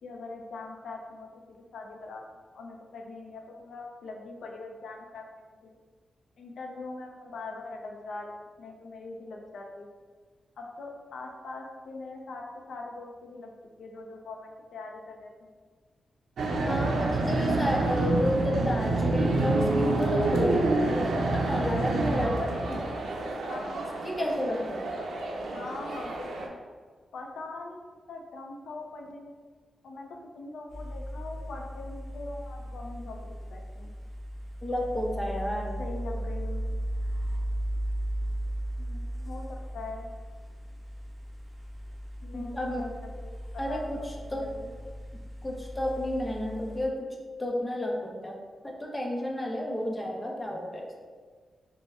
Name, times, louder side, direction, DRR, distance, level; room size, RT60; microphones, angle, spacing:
voice 1, 0.0-5.2 5.6-5.7 6.4-9.9 10.6-13.5 13.8-15.5 16.9-18.0 23.5-23.9 25.5-26.4 27.1-29.3 29.8-33.9 35.8-36.6 38.8-40.1 42.2-43.9 44.3-44.7, left 3 dB, 90° left, 1 dB, 0.5 m, -42 dB
sound 1, 16.4-26.5, right 2 dB, 85° right, 0.5 m, -28 dB
voice 2, 16.6-22.9 24.0-24.8 34.6-35.8 42.3-42.9 43.6-44.5 45.1-47.1 47.4-48.4 48.6-50.9, left 1 dB, 15° left, -1 dB, 0.6 m, -31 dB
sound 2, 30.7-46.9, equal, 10° right, 1.2 m, -36 dB
5.2 x 2.1 x 3.5 m, 1.5 s
wide cardioid pair, 125°, 0 cm